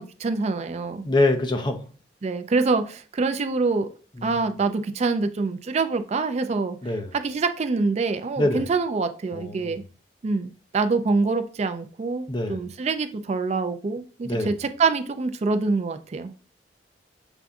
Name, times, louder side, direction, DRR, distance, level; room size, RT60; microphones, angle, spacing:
voice 1, 0.0-1.1 2.2-3.9 4.2-6.8 7.1-9.8 10.2-16.3, right 4 dB, 40° right, 0.4 m, -25 dB
voice 2, 1.0-1.8 4.2-4.4 6.8-7.1 8.4-8.7 9.3-9.8 12.3-12.6 14.2-14.5, left 2 dB, 25° left, 0.6 m, -24 dB
6.9 x 2.6 x 2.3 m
head